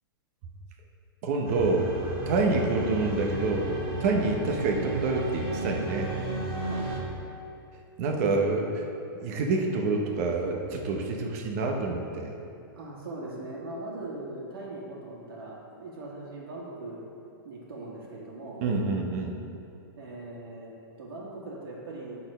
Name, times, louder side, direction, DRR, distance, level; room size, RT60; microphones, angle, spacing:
voice 1, 1.2-1.9 2.3-3.7 4.0-6.1 8.0-8.7 9.2-12.3 18.6-19.4, right 3 dB, 40° right, 2 dB, 0.9 m, -27 dB
sound 1, 1.4-7.0, right 1 dB, 20° right, 1.2 m, -34 dB
voice 2, 6.6-6.9 8.3-8.5 12.7-17.0 17.4-18.6 20.0-22.2, right 2 dB, 75° right, -4 dB, 1.9 m, -40 dB
8.7 x 4.2 x 5.5 m, 2.6 s
hypercardioid pair, 165°, 12 cm